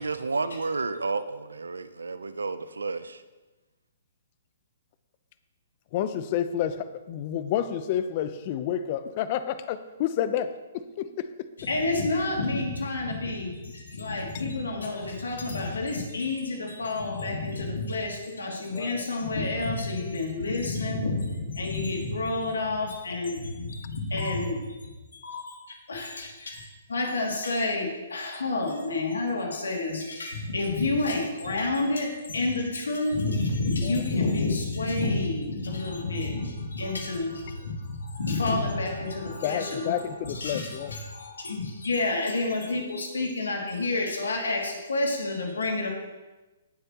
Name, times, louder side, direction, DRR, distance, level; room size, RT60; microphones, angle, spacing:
voice 1, 0.0-3.2, right 4 dB, 85° right, 13 dB, 0.6 m, -31 dB
voice 2, 5.9-11.5 18.7-19.1 33.8-34.0 39.4-40.9, left 10 dB, 40° left, 12 dB, 0.7 m, -30 dB
voice 3, 11.6-24.8 25.1-26.6 26.9-40.0 40.3-45.9, left 2 dB, 80° left, 0 dB, 2.6 m, -29 dB
18.0 x 7.8 x 3.0 m, 1.1 s
hypercardioid pair, 130°, 0 cm